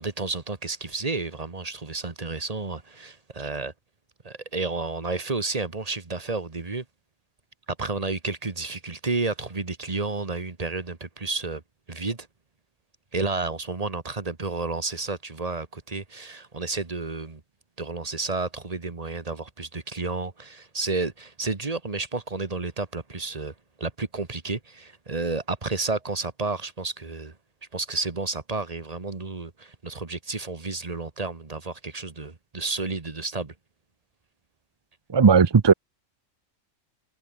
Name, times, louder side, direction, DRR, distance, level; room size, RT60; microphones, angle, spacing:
voice 1, 0.0-3.7 4.2-6.8 7.7-11.6 11.9-12.3 13.1-17.4 17.8-27.3 27.7-33.5, right 3 dB, 30° right, 1.6 m, -31 dB
voice 2, 35.1-35.7, right 5 dB, 45° right, 0.3 m, -16 dB
omnidirectional pair, 1.3 m